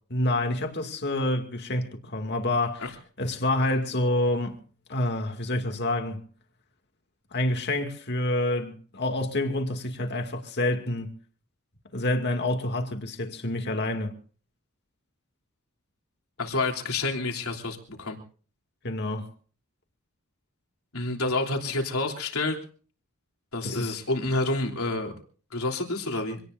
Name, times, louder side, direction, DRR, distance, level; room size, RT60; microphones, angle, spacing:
voice 1, 0.1-4.6 4.9-6.2 7.3-11.1 11.9-14.1 18.8-19.3 23.6-24.0, left 1 dB, 50° left, 2.4 m, -28 dB
voice 2, 16.4-18.2 20.9-22.6 23.5-25.1 25.5-26.4, left 2 dB, 75° left, 3.4 m, -28 dB
26.0 x 18.5 x 2.6 m
head